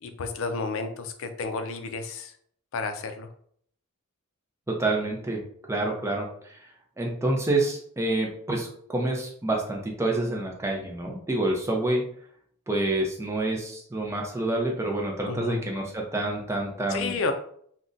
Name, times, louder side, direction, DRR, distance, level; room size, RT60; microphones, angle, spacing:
voice 1, 0.0-2.3 2.7-3.3 15.3-15.6 16.9-17.3, left 4 dB, 60° left, 7 dB, 0.4 m, -31 dB
voice 2, 4.7-5.4 5.7-6.6 7.0-12.0 12.7-17.2, right 2 dB, 10° right, 0 dB, 0.5 m, -28 dB
2.4 x 2.1 x 3.8 m, 0.63 s
head